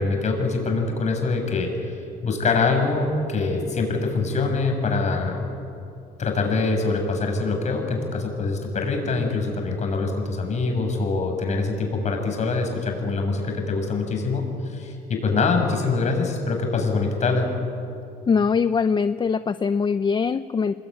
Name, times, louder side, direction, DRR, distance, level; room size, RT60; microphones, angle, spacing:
voice 1, 0.0-5.4 6.2-17.5, left 3 dB, 45° left, 3 dB, 6.7 m, -24 dB
voice 2, 18.3-20.7, left 5 dB, 25° left, 12 dB, 0.7 m, -22 dB
26.5 x 22.0 x 9.8 m, 2.7 s
cardioid pair, 110°, 17 cm